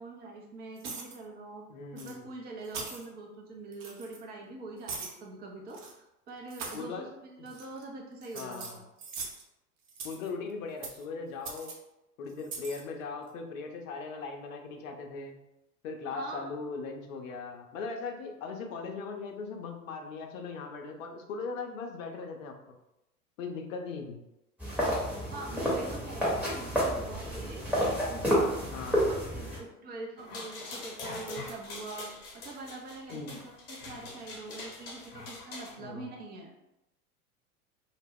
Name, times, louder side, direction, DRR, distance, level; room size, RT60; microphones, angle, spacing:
voice 1, 0.0-1.6 1.9-8.9 16.1-16.4 25.3-28.7 29.1-36.5, right 2 dB, 20° right, 0 dB, 0.5 m, -44 dB
sound 1, 0.8-1.2 2.0-2.1 2.6-3.1 3.7-4.2 4.9-5.2 5.7-5.9 6.5-6.8 7.5-7.8 8.2-9.4 9.9-10.3 10.8-11.0 11.4-11.7 12.4-12.8, right 4 dB, 50° right, 0.8 m, -41 dB
voice 2, 1.7-2.3 6.7-7.1 7.4-7.5 8.3-8.8 10.0-11.7 12.2-15.4 15.8-22.7 23.4-24.2 28.7-29.1 33.1-33.4 35.8-36.1, left 4 dB, 60° left, 3 dB, 0.6 m, -39 dB
sound 2, 24.6-29.6, equal, 5° right, 0.9 m, -30 dB
sound 3, 30.2-35.8, left 3 dB, 40° left, 1.0 m, -43 dB
2.2 x 2.1 x 3.4 m, 0.90 s
figure-of-eight pair, 85°, 46 cm